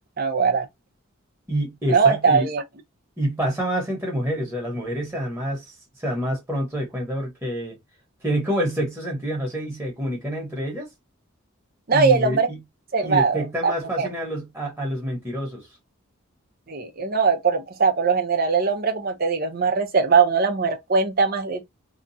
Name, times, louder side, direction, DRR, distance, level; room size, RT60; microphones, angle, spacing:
voice 1, 0.2-0.7 1.9-2.6 11.9-12.5 12.9-13.7 14.0-14.1 16.7-21.6, right 5 dB, 45° right, 0.7 m, -21 dB
voice 2, 1.5-2.5 3.2-5.6 6.0-7.8 8.2-10.9 11.9-12.6 13.0-15.7, equal, 10° right, 1.1 m, -27 dB
2.9 x 2.4 x 2.6 m
head